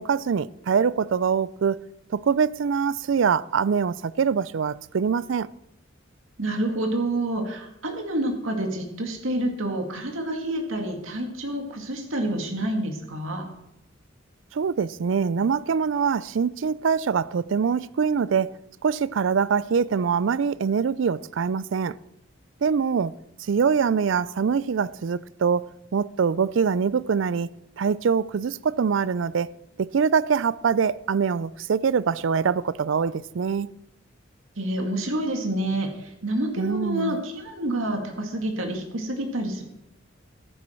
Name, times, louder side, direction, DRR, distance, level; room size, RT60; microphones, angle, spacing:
voice 1, 0.0-1.8 2.1-5.5 14.5-18.6 18.8-22.0 22.6-23.1 23.4-27.5 27.8-29.5 29.8-33.7 36.6-37.2, right 6 dB, 70° right, 0.4 m, -24 dB
voice 2, 6.4-13.5 34.6-39.6, right 1 dB, 90° right, 2.1 m, -28 dB
14.5 x 11.0 x 4.5 m
head